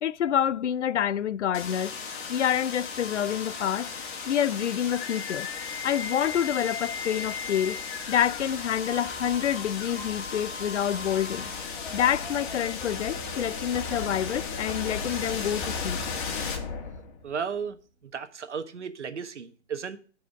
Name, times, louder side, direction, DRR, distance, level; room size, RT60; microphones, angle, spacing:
voice 1, 0.0-2.0 2.3-3.9 4.3-5.5 5.8-7.8 8.1-11.5 11.9-16.0, left 10 dB, 85° left, 0.5 m, -27 dB
sound 1, 1.5-17.4, left 5 dB, 45° left, 2.3 m, -35 dB
voice 2, 17.2-17.8 18.0-20.0, right 6 dB, 90° right, 1.3 m, -34 dB
14.5 x 4.9 x 3.5 m
hypercardioid pair, 140°, 34 cm